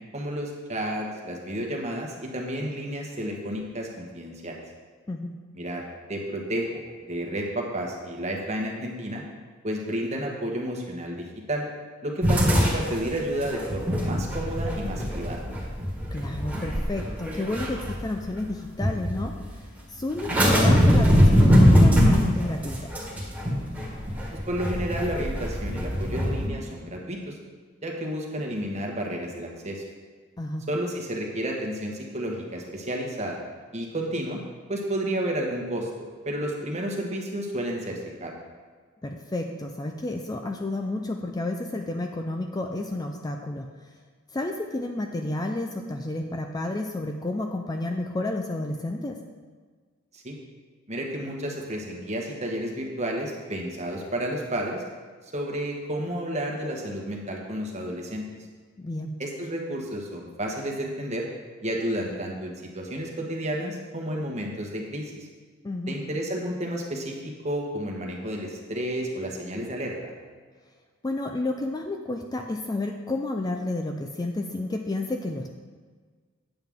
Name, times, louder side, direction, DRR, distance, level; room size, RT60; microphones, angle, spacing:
voice 1, 0.1-4.6 5.5-5.8 6.1-6.7 7.0-9.2 9.6-11.6 12.0-15.4 24.5-27.4 27.8-29.8 30.7-33.4 33.7-34.4 34.7-38.3 50.1-50.3 50.9-54.8 55.3-58.3 59.2-61.2 61.6-65.1 65.9-69.9, right 1 dB, 35° right, 0 dB, 1.3 m, -31 dB
sound 1, 12.2-18.4 18.8-19.4 20.2-26.5, equal, 10° right, 1.8 m, -22 dB
voice 2, 16.1-19.4 19.9-22.9 30.4-30.6 39.0-43.7 44.3-49.2 58.8-59.1 65.6-66.0 71.0-75.5, left 2 dB, 20° left, 4 dB, 0.4 m, -31 dB
8.9 x 7.8 x 3.6 m, 1.5 s
head